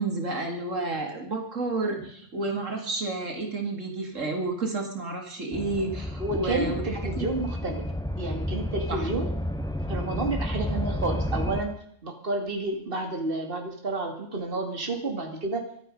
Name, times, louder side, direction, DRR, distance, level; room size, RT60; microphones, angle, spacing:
voice 1, 0.0-7.3 8.9-9.1, right 2 dB, 75° right, 3 dB, 2.6 m, -31 dB
sound 1, 5.5-11.6, left 1 dB, 5° left, 1.0 m, -31 dB
voice 2, 6.2-7.8 8.2-9.3 9.9-11.7 12.0-15.6, right 2 dB, 45° right, 3 dB, 2.6 m, -30 dB
24.0 x 9.2 x 5.3 m, 0.66 s
omnidirectional pair, 1.3 m